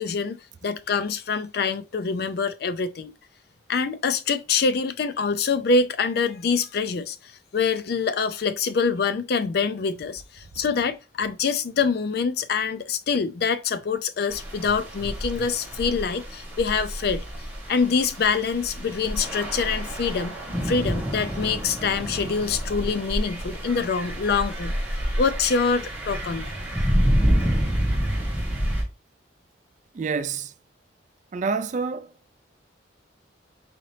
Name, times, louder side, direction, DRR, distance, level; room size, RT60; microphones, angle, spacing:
voice 1, 0.0-3.1 3.7-17.2 17.7-20.4 20.6-24.8 25.2-26.5, left 5 dB, 60° left, 0.4 m, -25 dB
sound 1, 14.3-28.8, equal, 10° right, 1.2 m, -28 dB
voice 2, 29.9-30.5 31.3-32.2, right 4 dB, 40° right, 0.4 m, -29 dB
4.2 x 3.8 x 3.2 m
head